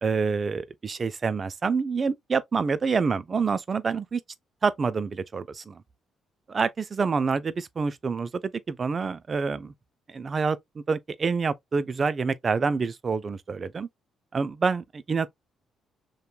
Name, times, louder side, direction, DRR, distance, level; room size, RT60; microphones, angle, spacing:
voice 1, 0.0-4.2 4.6-5.8 6.5-9.7 10.1-13.9 14.3-15.3, right 5 dB, 40° right, 0.4 m, -27 dB
3.0 x 2.2 x 2.3 m
supercardioid pair, 65°, 0 cm